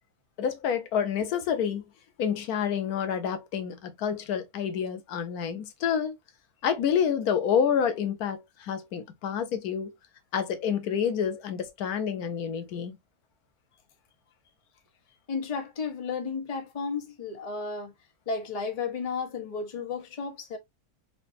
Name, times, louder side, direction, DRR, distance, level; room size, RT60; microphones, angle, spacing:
voice 1, 0.4-1.8 2.2-6.1 6.6-9.9 10.3-13.0, left 7 dB, 90° left, 1.3 m, -28 dB
voice 2, 15.3-17.9 18.3-20.6, left 5 dB, 30° left, 0.8 m, -33 dB
4.8 x 2.6 x 2.6 m
omnidirectional pair, 1.5 m